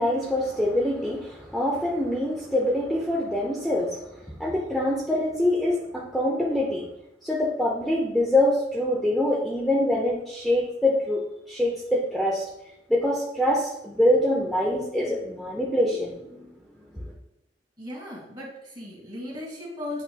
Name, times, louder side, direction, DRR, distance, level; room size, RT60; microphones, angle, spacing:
voice 1, 0.0-6.9 7.2-11.2 11.5-12.4 12.9-16.5 16.9-17.1, left 1 dB, ahead, -5 dB, 0.6 m, -25 dB
voice 2, 17.8-20.0, left 1 dB, 25° right, -3 dB, 1.7 m, -37 dB
8.0 x 3.0 x 2.2 m, 0.86 s
head